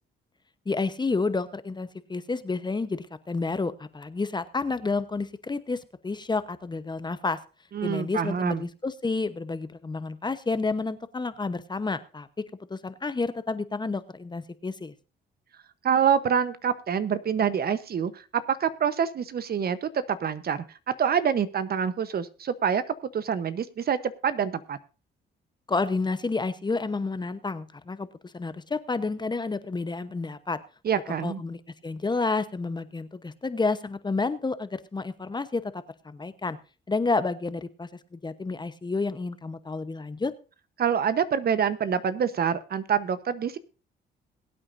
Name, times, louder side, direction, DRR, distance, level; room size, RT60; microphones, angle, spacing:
voice 1, 0.7-7.4 7.8-14.9 25.7-30.6 31.2-36.6 36.9-40.3, left 3 dB, 20° left, 13 dB, 0.9 m, -30 dB
voice 2, 7.7-8.6 15.8-20.6 21.0-22.8 23.1-24.0 24.2-24.8 30.8-31.4 40.8-43.6, right 7 dB, 50° right, 14 dB, 1.0 m, -26 dB
21.5 x 8.7 x 2.6 m, 0.34 s
cardioid pair, 90°, 20 cm